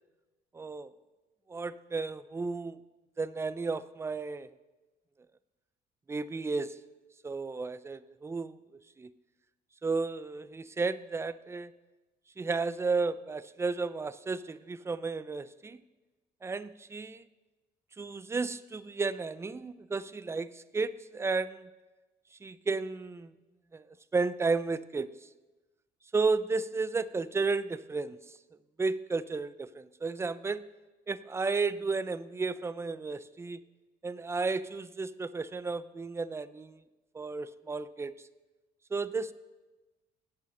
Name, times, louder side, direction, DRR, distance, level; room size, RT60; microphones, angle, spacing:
voice 1, 0.5-0.9 1.5-2.8 3.2-4.5 6.1-6.8 7.2-8.6 9.0-9.1 9.8-11.7 12.4-15.8 16.4-17.2 18.0-21.7 22.4-23.3 23.7-23.9 24.1-25.3 26.1-28.2 28.8-30.6 31.1-33.6 34.0-36.8 37.1-38.1 38.9-39.3, right 4 dB, 15° right, 15 dB, 0.4 m, -33 dB
17.0 x 7.0 x 3.8 m, 1.2 s
cardioid pair, 110°, 17 cm